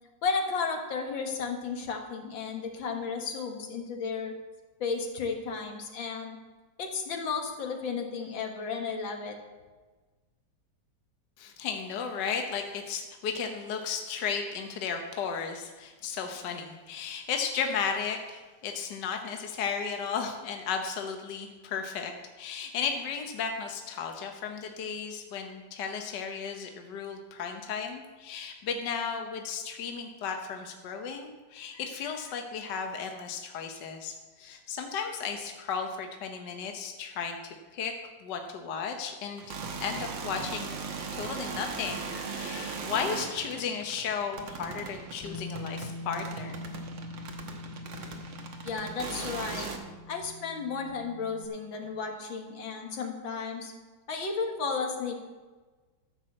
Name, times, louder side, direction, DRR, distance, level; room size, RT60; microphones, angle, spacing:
voice 1, 0.2-4.3 4.8-6.4 6.8-9.4 48.6-49.7 50.1-53.7 54.1-55.1, left 5 dB, 90° left, 3 dB, 2.3 m, -33 dB
voice 2, 11.4-22.1 22.4-37.9 38.2-40.8 41.1-46.6 49.1-49.7, left 6 dB, 70° left, 4 dB, 1.6 m, -34 dB
sound 1, 39.4-49.8, right 5 dB, 80° right, 2.0 m, -39 dB
Bass guitar, 45.2-51.5, left 3 dB, 10° left, 1.6 m, -43 dB
13.0 x 6.1 x 7.6 m, 1.3 s
omnidirectional pair, 2.0 m